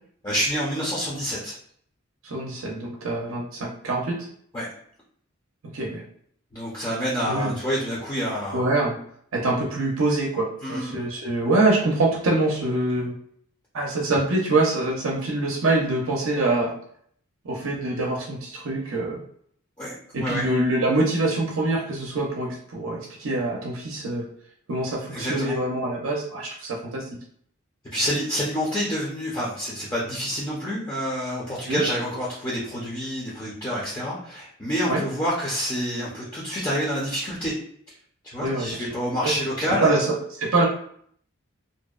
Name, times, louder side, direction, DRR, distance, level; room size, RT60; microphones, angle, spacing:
voice 1, 0.2-1.5 4.5-4.7 6.5-8.6 10.6-11.0 19.8-19.9 20.2-20.5 25.1-25.6 27.9-37.5 38.3-39.9, equal, 20° left, -7 dB, 0.5 m, -27 dB
voice 2, 2.2-4.1 5.7-6.0 7.3-7.6 8.5-9.0 9.3-13.1 13.7-16.7 17.4-19.2 20.1-24.3 24.7-27.0 31.7-31.8 34.9-35.0 38.4-38.9 39.2-39.3 39.8-40.7, right 2 dB, 70° right, -2 dB, 0.5 m, -24 dB
2.6 x 2.1 x 2.3 m, 0.63 s
head